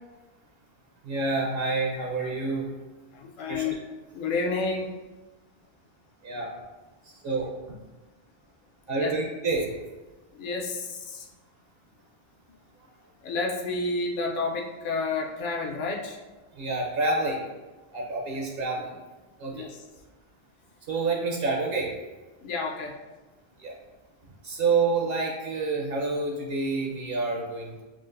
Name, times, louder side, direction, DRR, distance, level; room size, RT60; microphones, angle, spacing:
voice 1, 1.0-2.7 3.5-3.7 6.2-6.5 7.1-7.5 8.9-9.7 16.5-17.4 17.9-19.0 19.4-19.7 20.9-21.9 23.6-23.7 24.4-27.8, right 3 dB, 70° right, -1 dB, 0.8 m, -28 dB
voice 2, 3.1-3.8 4.1-4.9 9.0-9.1 10.3-11.3 13.2-16.2 18.6-18.7 19.5-19.8 22.4-22.9, left 3 dB, 60° left, 0 dB, 0.7 m, -30 dB
5.8 x 2.4 x 2.5 m, 1.2 s
omnidirectional pair, 1.0 m